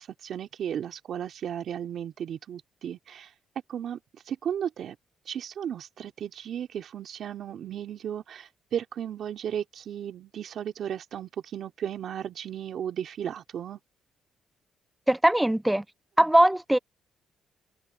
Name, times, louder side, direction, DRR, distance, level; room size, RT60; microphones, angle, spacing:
voice 1, 0.0-3.3 3.7-5.0 5.3-13.8, right 9 dB, 65° right, 3.1 m, -35 dB
voice 2, 15.1-15.8 16.2-16.8, right 1 dB, 5° right, 0.5 m, -20 dB
cardioid pair, 90°, 0 cm